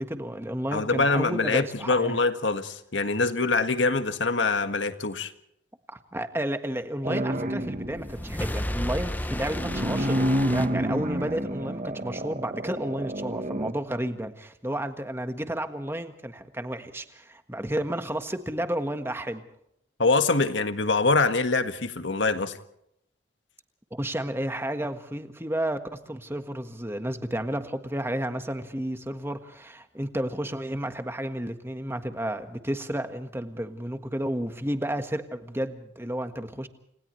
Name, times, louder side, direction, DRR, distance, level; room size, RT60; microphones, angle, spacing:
voice 1, 0.0-2.2 5.9-19.4 23.9-36.7, right 1 dB, 15° right, 8 dB, 1.5 m, -32 dB
voice 2, 0.7-5.3 20.0-22.6, left 3 dB, 75° left, 8 dB, 1.7 m, -24 dB
sound 1, 7.0-8.1 9.3-13.7, right 1 dB, 40° right, 1.3 m, -29 dB
sound 2, 7.6-11.4, left 1 dB, 10° left, 0.8 m, -33 dB
29.5 x 28.0 x 3.2 m, 0.76 s
head